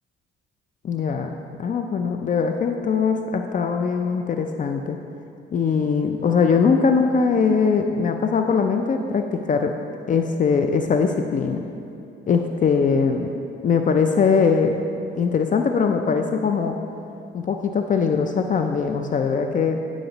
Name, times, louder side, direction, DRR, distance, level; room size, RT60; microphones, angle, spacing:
voice 1, 0.8-1.3 1.6-5.0 5.5-9.7 10.1-11.6 12.3-13.3 13.6-14.7 15.2-16.8 17.3-19.8, left 5 dB, 40° left, 5 dB, 0.4 m, -21 dB
9.5 x 4.9 x 3.9 m, 2.7 s
cardioid pair, 90°, 20 cm